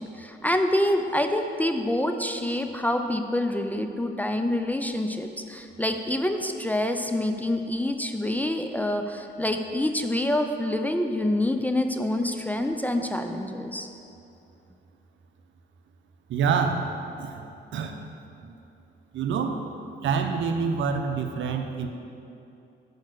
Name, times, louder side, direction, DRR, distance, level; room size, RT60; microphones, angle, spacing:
voice 1, 0.0-13.9, left 1 dB, 10° left, 6 dB, 0.4 m, -26 dB
voice 2, 16.3-16.9 17.2-17.4 17.7-18.1 18.4-18.5 19.1-19.6 20.0-21.9, right 5 dB, 70° right, 6 dB, 0.7 m, -26 dB
6.6 x 4.7 x 6.5 m, 2.7 s
cardioid pair, 90°, 20 cm